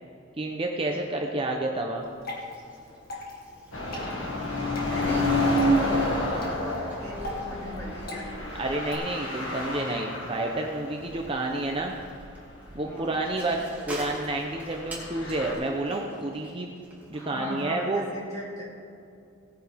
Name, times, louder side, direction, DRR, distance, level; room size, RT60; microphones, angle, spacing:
voice 1, 0.4-2.1 8.6-12.0 12.7-16.7 17.1-18.0, right 2 dB, 25° right, 1 dB, 0.7 m, -29 dB
Water / Drip, 1.9-8.9, left 1 dB, 50° left, 2.0 m, -42 dB
Bicycle, 2.2-17.7, right 1 dB, 10° right, 2.4 m, -48 dB
sound 1, 3.7-10.8 11.1-11.2 11.8-12.3 12.7-12.8 14.7-15.5, left 1 dB, 75° left, 2.0 m, -29 dB
voice 2, 3.8-4.3 4.8-8.7 11.1-11.2 12.8-13.2 17.1-18.8, equal, 15° left, -4 dB, 2.4 m, -39 dB
18.0 x 9.1 x 3.5 m, 2.5 s
head